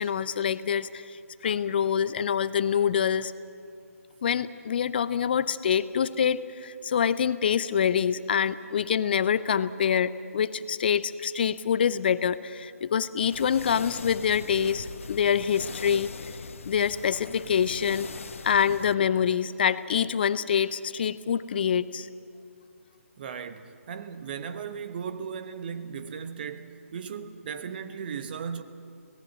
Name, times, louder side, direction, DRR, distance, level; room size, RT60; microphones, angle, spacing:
voice 1, 0.0-3.3 4.2-16.2 16.7-18.2 18.4-22.1, left 8 dB, 40° left, 0.6 m, -26 dB
sound 1, 13.3-18.9, left 5 dB, 60° left, 1.0 m, -41 dB
voice 2, 23.2-28.6, right 6 dB, 40° right, 1.2 m, -37 dB
24.5 x 18.5 x 7.7 m
figure-of-eight pair, 150°, 8 cm